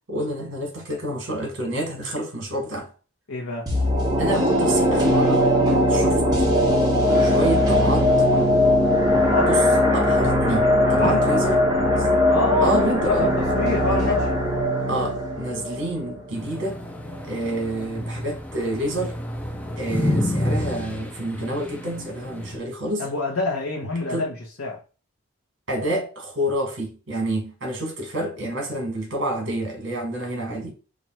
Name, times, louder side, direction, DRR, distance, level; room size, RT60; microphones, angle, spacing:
voice 1, 0.1-2.9 4.2-5.5 5.9-6.4 7.2-8.1 9.5-9.7 9.9-11.6 12.0-12.1 12.6-13.3 13.9-14.2 14.9-16.8 17.2-19.2 19.8-23.1 24.1-24.3 25.7-30.7, right 1 dB, 60° right, 1.4 m, -28 dB
voice 2, 3.3-3.7 9.1-9.5 11.0-11.4 12.3-14.2 23.0-24.8, left 3 dB, 80° left, 0.9 m, -26 dB
sound 1, 3.7-16.7 17.1-17.2, left 1 dB, 20° right, 1.0 m, -20 dB
sound 2, 16.3-22.6, left 1 dB, 5° left, 0.4 m, -29 dB
3.1 x 2.5 x 4.2 m
head